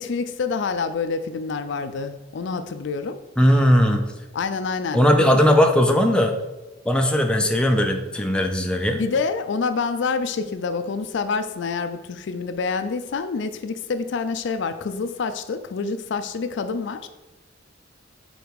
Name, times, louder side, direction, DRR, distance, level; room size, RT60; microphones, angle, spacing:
voice 1, 0.0-3.2 4.3-5.0 8.9-17.1, left 4 dB, 65° left, 0.4 m, -27 dB
voice 2, 3.4-4.0 4.9-6.3 6.9-9.0, equal, 5° left, 0.5 m, -18 dB
5.1 x 4.0 x 4.7 m
head